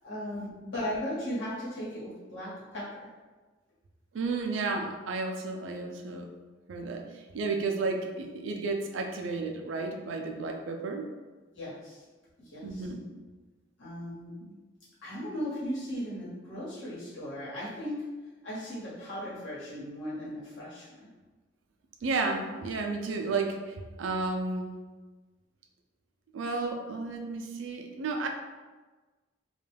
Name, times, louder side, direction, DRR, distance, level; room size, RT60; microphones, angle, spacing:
voice 1, 0.0-3.1 11.5-12.0 12.4-12.9 13.8-14.3 15.0-18.0 18.4-21.1, equal, 75° left, -9 dB, 1.2 m, -37 dB
voice 2, 4.1-6.3 6.7-11.1 12.6-13.1 14.4-14.5 22.0-24.8 26.3-28.3, right 3 dB, 75° right, 3 dB, 0.4 m, -32 dB
2.3 x 2.2 x 3.3 m, 1.3 s
head